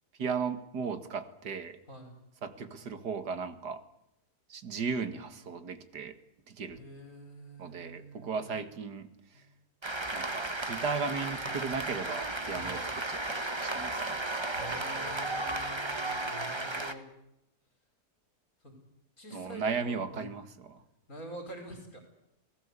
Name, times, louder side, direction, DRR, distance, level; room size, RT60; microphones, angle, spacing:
voice 1, 0.2-1.8 2.4-3.8 4.5-6.2 6.5-6.8 7.6-9.1 10.1-12.8 13.1-14.2 19.3-20.8, right 5 dB, 85° right, 11 dB, 2.4 m, -36 dB
voice 2, 6.7-8.5 9.3-9.4 12.5-12.8 14.5-17.1 18.6-18.7 19.2-20.3 21.1-22.0, right 1 dB, 55° left, 4 dB, 5.5 m, -47 dB
Cheering / Applause, 9.8-16.9, right 2 dB, 15° right, 1.6 m, -34 dB
29.5 x 18.5 x 8.4 m, 0.81 s
omnidirectional pair, 1.7 m